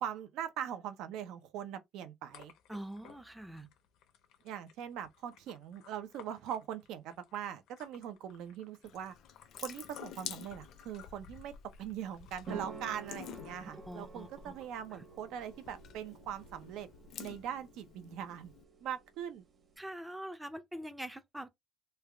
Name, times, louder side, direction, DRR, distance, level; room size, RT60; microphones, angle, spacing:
voice 1, 0.0-2.5 4.4-9.1 9.6-16.9 17.2-18.5 18.8-19.4, right 9 dB, 80° right, 0.6 m, -41 dB
sound 1, 2.3-13.6, left 9 dB, 85° left, 0.8 m, -62 dB
voice 2, 2.7-3.7 13.6-14.5 14.9-15.0 19.8-21.5, right 1 dB, 5° right, 0.4 m, -44 dB
Water tap faucet / Sink (filling or washing) / Drip, 8.8-18.6, left 8 dB, 55° left, 0.6 m, -50 dB
sound 2, 12.5-19.8, right 5 dB, 35° right, 0.9 m, -50 dB
3.3 x 2.4 x 3.3 m
cardioid pair, 165°, 0 cm